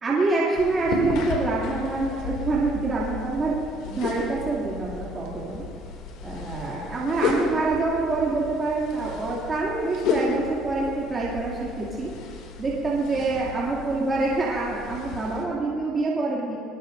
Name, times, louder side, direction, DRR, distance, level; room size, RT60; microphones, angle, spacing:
voice 1, 0.0-3.5 3.9-5.7 6.2-12.1 12.6-16.6, right 3 dB, 25° right, -7 dB, 2.6 m, -26 dB
sound 1, 0.5-15.4, left 4 dB, 70° left, 2.6 m, -33 dB
23.5 x 21.0 x 2.7 m, 2.6 s
cardioid pair, 150°, 0 cm